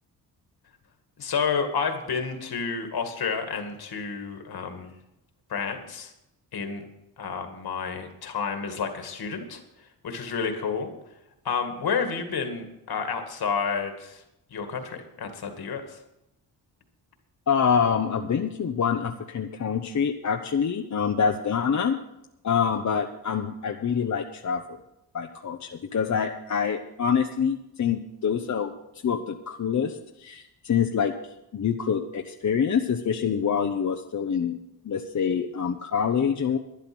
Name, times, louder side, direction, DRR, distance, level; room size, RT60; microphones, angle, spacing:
voice 1, 1.2-4.9 5.5-6.1 6.5-6.8 7.2-10.9 11.4-14.2 14.5-16.0, left 5 dB, 65° left, 6 dB, 2.1 m, -30 dB
voice 2, 17.5-22.0 22.4-24.8 25.1-28.7 29.0-31.1 31.5-34.6 34.8-36.6, left 7 dB, 45° left, 4 dB, 0.8 m, -26 dB
12.0 x 10.5 x 6.1 m, 0.87 s
cardioid pair, 110°, 41 cm